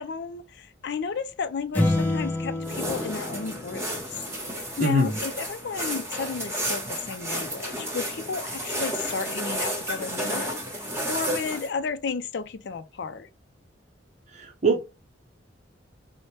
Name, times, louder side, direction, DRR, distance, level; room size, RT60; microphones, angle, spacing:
voice 1, 0.0-13.3, left 5 dB, 65° left, 0.4 m, -33 dB
sound 1, 1.7-4.4, left 1 dB, 10° left, 0.9 m, -28 dB
sound 2, 2.6-11.7, right 1 dB, 15° right, 1.1 m, -32 dB
voice 2, 4.8-5.2 14.3-14.8, right 2 dB, 40° right, 0.6 m, -23 dB
4.2 x 2.1 x 3.1 m
head